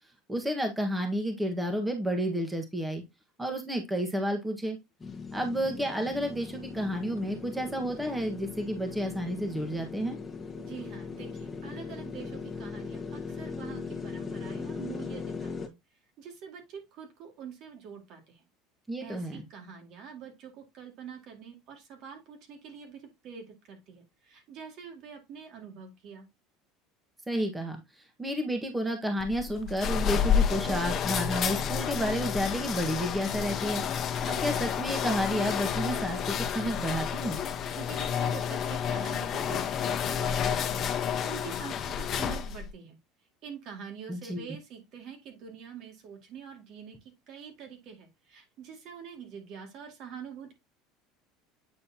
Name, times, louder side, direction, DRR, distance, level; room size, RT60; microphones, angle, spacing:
voice 1, 0.3-3.0 3.4-4.8 5.3-10.2 18.9-19.5 27.3-37.4 44.1-44.4, equal, 10° right, 4 dB, 1.4 m, -31 dB
sound 1, 5.0-15.7, left 5 dB, 15° left, 1.4 m, -39 dB
voice 2, 10.6-15.8 16.2-18.4 19.0-26.3 37.8-43.0 43.4-50.5, right 7 dB, 55° right, 3 dB, 2.1 m, -45 dB
sound 2, 29.2-42.7, left 8 dB, 40° left, 1.0 m, -30 dB
8.6 x 4.3 x 2.8 m, 0.21 s
supercardioid pair, 105°, 0 cm